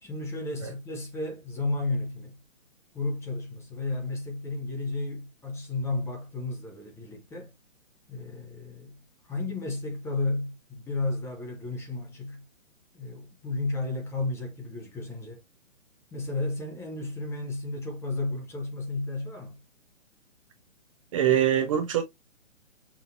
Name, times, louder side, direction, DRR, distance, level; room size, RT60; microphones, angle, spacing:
voice 1, 0.0-2.4 2.9-7.5 8.1-9.0 9.2-12.4 12.9-15.4 16.1-19.6, left 2 dB, 5° left, 0.8 m, -33 dB
voice 2, 21.1-22.0, right 10 dB, 25° right, 0.6 m, -23 dB
6.0 x 2.7 x 2.5 m
hypercardioid pair, 140°, 38 cm